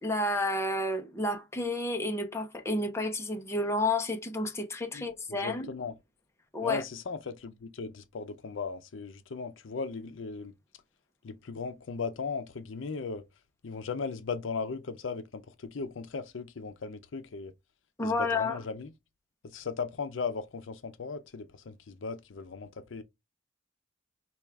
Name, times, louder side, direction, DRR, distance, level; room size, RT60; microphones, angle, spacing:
voice 1, 0.0-5.7 6.5-6.8 18.0-18.6, left 2 dB, 15° left, 0.6 m, -30 dB
voice 2, 4.9-6.0 6.6-10.5 11.2-13.2 13.6-17.5 18.0-18.9 19.4-23.0, left 4 dB, 75° left, 0.5 m, -37 dB
4.3 x 2.3 x 3.4 m
head